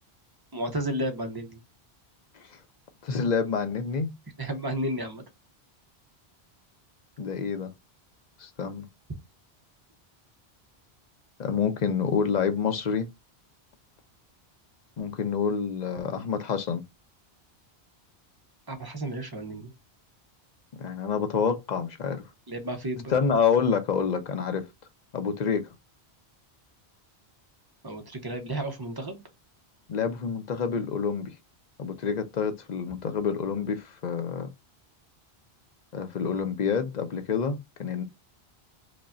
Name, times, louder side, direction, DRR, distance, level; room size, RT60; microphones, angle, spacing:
voice 1, 0.5-1.6 4.4-5.2 18.7-19.7 22.5-23.2 27.8-29.2, right 1 dB, 25° right, 0.7 m, -32 dB
voice 2, 3.0-4.1 7.2-7.7 8.4-8.8 11.4-13.1 15.0-16.8 20.8-22.2 23.1-24.7 25.1-25.7 29.9-31.3 31.8-34.5 35.9-38.0, left 6 dB, 50° left, 0.6 m, -27 dB
5.0 x 2.2 x 2.5 m
omnidirectional pair, 1.1 m